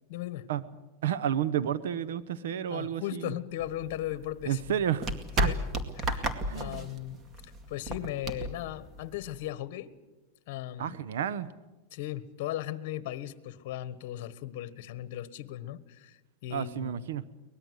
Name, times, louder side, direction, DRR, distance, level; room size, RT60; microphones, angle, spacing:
voice 1, 0.1-0.4 2.7-4.6 5.4-5.5 6.0-7.2 7.4-9.9 10.5-10.9 11.9-17.0, left 13 dB, 60° left, 15 dB, 1.4 m, -37 dB
voice 2, 1.0-3.4 4.5-5.5 6.4-6.9 10.8-11.5 16.5-17.3, right 9 dB, 80° right, 15 dB, 1.0 m, -31 dB
sound 1, 3.5-9.5, right 1 dB, 20° right, 2.2 m, -33 dB
23.5 x 19.5 x 8.2 m, 1.1 s
supercardioid pair, 150°, 0 cm